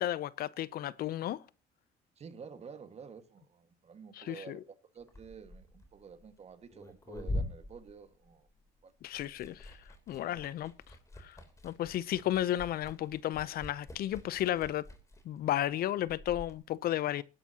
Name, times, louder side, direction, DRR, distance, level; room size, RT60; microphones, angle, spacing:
voice 1, 0.0-1.4 4.2-4.6 9.0-9.8 10.1-10.7 11.2-11.4 11.6-14.9 15.2-17.2, left 12 dB, 60° left, 0.6 m, -33 dB
voice 2, 2.2-8.5 8.8-8.9 10.1-10.4, right 6 dB, 40° right, 1.7 m, -50 dB
Liquid, 5.0-8.7 9.0-16.5, left 1 dB, 20° left, 3.1 m, -44 dB
20.5 x 11.0 x 2.9 m
cardioid pair, 110°, 17 cm